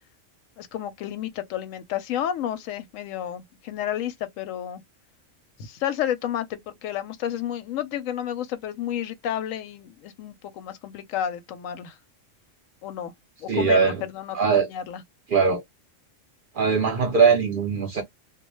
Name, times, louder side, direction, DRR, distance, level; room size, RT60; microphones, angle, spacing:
voice 1, 0.6-4.8 5.6-12.0 12.8-13.1 13.4-15.0, left 10 dB, 85° left, 1.0 m, -31 dB
voice 2, 13.5-14.0 14.3-14.7 15.3-15.6 16.5-18.0, right 5 dB, 55° right, 0.6 m, -20 dB
2.2 x 2.1 x 3.0 m
omnidirectional pair, 1.3 m